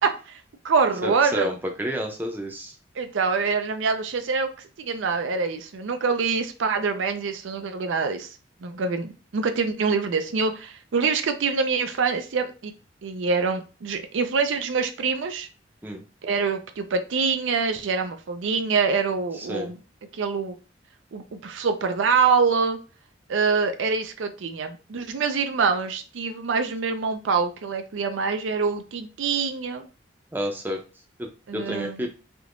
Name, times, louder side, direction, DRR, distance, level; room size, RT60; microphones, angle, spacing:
voice 1, 0.0-1.5 3.0-4.5 4.8-8.3 8.6-12.7 13.0-15.5 16.2-19.8 20.2-20.5 21.1-22.8 23.3-29.9 31.5-32.1, right 5 dB, 85° right, 8 dB, 0.5 m, -25 dB
voice 2, 1.0-2.7 15.8-16.0 19.4-19.7 30.3-30.8 31.2-32.1, equal, 10° right, 2 dB, 0.5 m, -30 dB
3.5 x 2.9 x 2.5 m, 0.34 s
head